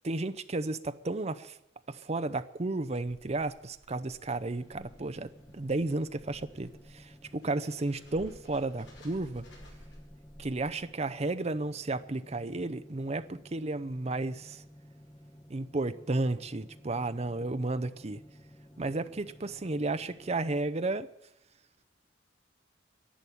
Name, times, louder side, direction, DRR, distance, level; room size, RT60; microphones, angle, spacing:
voice 1, 0.0-1.6 1.9-9.4 10.4-14.6 15.5-18.2 18.8-21.1, right 2 dB, 35° right, 12 dB, 0.7 m, -33 dB
sound 1, 3.0-11.1, equal, 65° left, 5.0 m, -55 dB
sound 2, 4.6-20.6, equal, 20° left, 1.1 m, -54 dB
11.5 x 11.0 x 9.9 m, 0.87 s
head